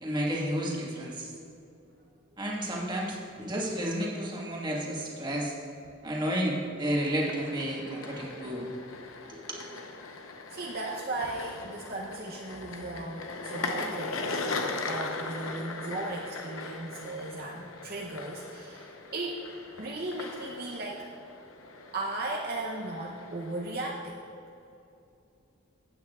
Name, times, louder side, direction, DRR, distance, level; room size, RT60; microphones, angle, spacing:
voice 1, 0.0-1.3 2.4-5.5 6.0-8.7 9.3-9.6, equal, 20° right, -3 dB, 1.5 m, -31 dB
sound 1, 7.0-23.9, left 3 dB, 80° left, 0.8 m, -39 dB
voice 2, 10.5-14.2 14.8-19.5 19.8-21.1 21.9-24.2, right 2 dB, 45° right, -2 dB, 0.7 m, -36 dB
15.0 x 8.8 x 2.4 m, 2.7 s
head